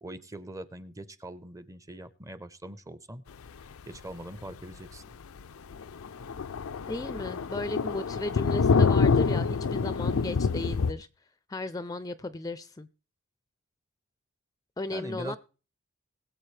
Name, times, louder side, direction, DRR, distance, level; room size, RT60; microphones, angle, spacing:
voice 1, 0.0-3.3 3.8-5.0 14.9-15.4, right 1 dB, 15° right, 0.7 m, -42 dB
Thunder, 3.9-4.1 4.5-4.6 5.0-5.1 5.4-5.5 5.7-10.9, left 5 dB, 90° left, 0.5 m, -26 dB
voice 2, 6.9-11.1 11.5-12.9 14.8-15.4, left 2 dB, 20° left, 0.5 m, -35 dB
21.5 x 7.9 x 3.3 m
head